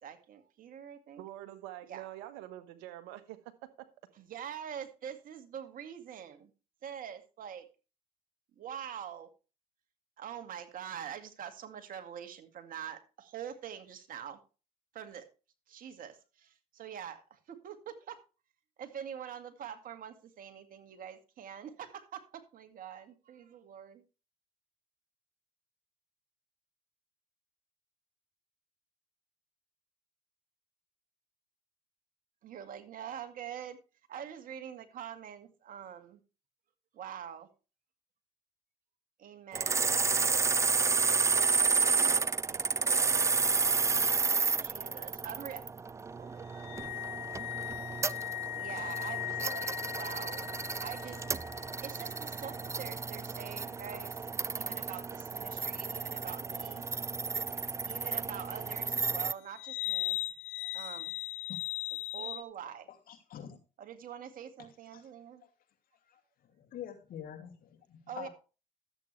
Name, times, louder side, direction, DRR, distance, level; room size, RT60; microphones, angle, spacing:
voice 1, 0.0-1.2 1.9-2.0 4.2-6.5 6.8-7.7 8.6-9.3 10.2-14.4 14.9-15.2 15.7-18.2 18.8-24.0 32.4-33.8 34.1-36.2 36.9-37.5 39.2-41.3 41.9-43.2 44.6-45.6 45.9-47.5 48.6-50.4 50.8-51.2 51.8-54.1 54.5-56.8 57.9-60.2 60.7-61.1 62.1-62.9 63.8-65.4 68.1-68.3, right 9 dB, 55° right, 2.0 m, -45 dB
voice 2, 1.2-3.9, right 14 dB, 80° right, 1.3 m, -46 dB
sound 1, 39.5-59.3, right 4 dB, 15° right, 0.4 m, -31 dB
sound 2, 46.5-52.7 59.5-62.4, left 16 dB, 80° left, 0.7 m, -39 dB
voice 3, 62.9-63.6 64.9-65.0 65.4-65.5 66.1-66.2 66.5-68.3, left 9 dB, 60° left, 2.6 m, -46 dB
13.0 x 8.3 x 3.3 m
supercardioid pair, 70°, 17 cm